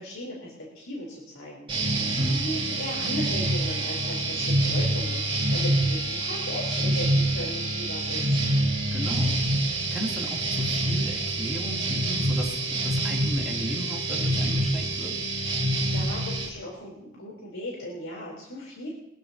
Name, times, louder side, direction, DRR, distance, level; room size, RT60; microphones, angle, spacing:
voice 1, 0.0-8.4 15.8-18.9, left 1 dB, 85° left, -4 dB, 4.2 m, -37 dB
sound 1, 1.7-16.5, right 1 dB, 25° right, 4.2 m, -26 dB
voice 2, 2.2-2.5 8.9-15.2, right 1 dB, ahead, -5 dB, 3.3 m, -35 dB
23.0 x 14.0 x 3.0 m, 0.87 s
head